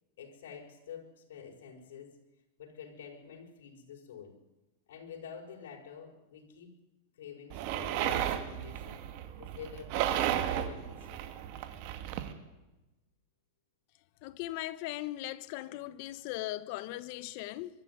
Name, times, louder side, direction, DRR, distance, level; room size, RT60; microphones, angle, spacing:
voice 1, 0.2-2.2 2.6-4.4 4.9-6.7 7.2-9.1 9.4-11.3, left 7 dB, 85° left, 5.4 m, -48 dB
sound 1, 7.5-12.3, right 11 dB, 50° right, 2.3 m, -34 dB
voice 2, 14.2-17.7, left 16 dB, 50° left, 1.0 m, -38 dB
23.5 x 13.5 x 9.6 m
supercardioid pair, 150°, 0 cm